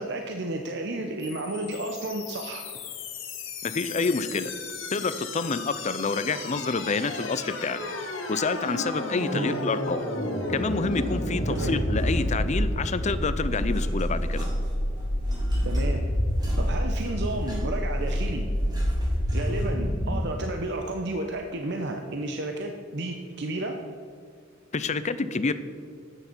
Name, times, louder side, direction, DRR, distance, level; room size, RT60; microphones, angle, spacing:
voice 1, 0.0-2.7 9.3-9.6 11.5-11.8 15.6-16.0 16.6-18.5 19.3-23.8, right 2 dB, 60° right, 3 dB, 0.8 m, -32 dB
sound 1, 1.2-20.2, left 1 dB, 80° left, 1.8 m, -29 dB
voice 2, 3.6-4.5 4.9-7.8 8.3-10.0 10.5-14.5 24.7-25.5, left 4 dB, 35° left, 13 dB, 0.6 m, -28 dB
sound 2, 10.9-12.5 12.9-19.9, equal, 20° right, 2.8 m, -45 dB
12.5 x 9.0 x 4.5 m, 2.2 s
head